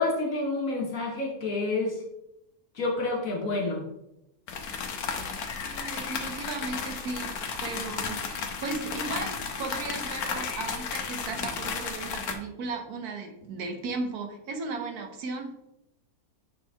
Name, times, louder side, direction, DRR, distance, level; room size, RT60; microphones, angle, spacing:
voice 1, 0.0-2.0 2.7-3.8, left 3 dB, 65° left, 0 dB, 1.4 m, -28 dB
sound 1, 4.5-12.4, left 5 dB, 85° left, 1.3 m, -33 dB
voice 2, 5.7-7.3 7.6-15.5, right 3 dB, 90° right, 4 dB, 1.4 m, -36 dB
6.6 x 4.5 x 3.4 m, 0.87 s
omnidirectional pair, 1.6 m